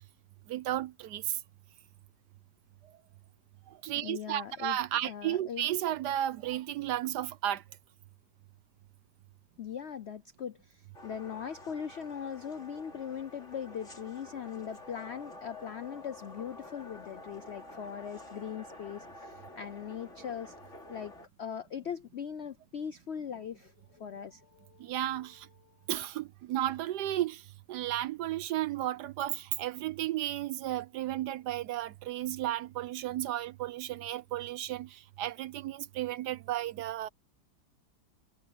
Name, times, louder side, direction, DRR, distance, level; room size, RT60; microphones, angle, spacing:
voice 1, 0.5-1.4 3.7-7.6 24.8-25.5 25.9-37.1, right 13 dB, 70° right, 1.1 m, -33 dB
voice 2, 4.0-4.8 5.0-5.7 9.6-20.6 20.9-21.1 21.4-24.9 25.7-25.9, left 8 dB, 85° left, 0.5 m, -40 dB
sound 1, 10.9-21.3, left 2 dB, 40° left, 3.2 m, -49 dB
omnidirectional pair, 2.1 m